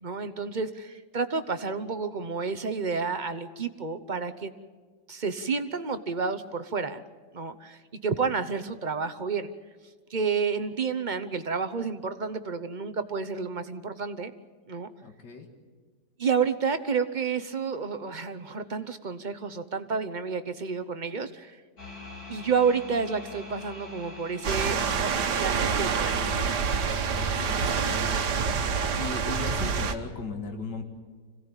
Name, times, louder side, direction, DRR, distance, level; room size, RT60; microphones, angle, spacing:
voice 1, 0.0-4.5 5.1-7.0 7.3-9.5 10.1-14.3 14.7-14.9 16.2-21.6 22.3-26.3 28.5-28.6, right 5 dB, 35° right, 10 dB, 0.9 m, -30 dB
voice 2, 15.0-15.5 27.2-28.2 28.9-30.8, left 3 dB, 90° left, 4 dB, 2.5 m, -37 dB
sound 1, 21.8-28.3, left 3 dB, 60° left, 4.9 m, -45 dB
sound 2, 24.4-30.0, right 5 dB, 75° right, 1.8 m, -27 dB
25.5 x 17.0 x 8.9 m, 1.5 s
omnidirectional pair, 1.8 m